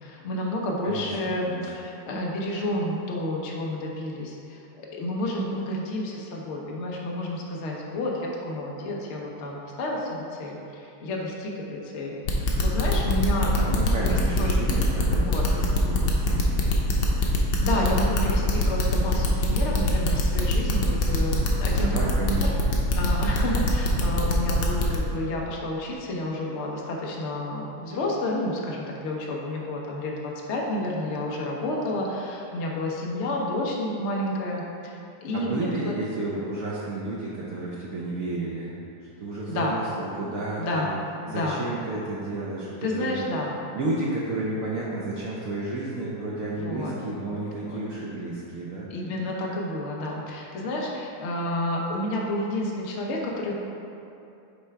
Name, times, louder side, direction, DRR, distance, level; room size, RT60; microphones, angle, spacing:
voice 1, 0.0-14.5 15.2-15.4 17.2-17.3 17.6-22.0 22.4-22.5 23.0-34.9 35.2-35.9 39.5-39.7 40.6-40.9 41.3-41.6 42.8-43.5 46.6-47.0 47.3-47.8 48.9-53.5, left 1 dB, 85° left, -2 dB, 0.6 m, -30 dB
voice 2, 0.8-1.7 13.5-16.8 21.8-22.5 35.3-38.8 39.2-40.9 41.3-43.1 43.7-48.9, right 2 dB, 85° right, -6 dB, 0.7 m, -32 dB
sound 1, 12.3-25.0, left 4 dB, 70° left, 1.3 m, -24 dB
6.7 x 3.3 x 4.6 m, 2.7 s
omnidirectional pair, 2.3 m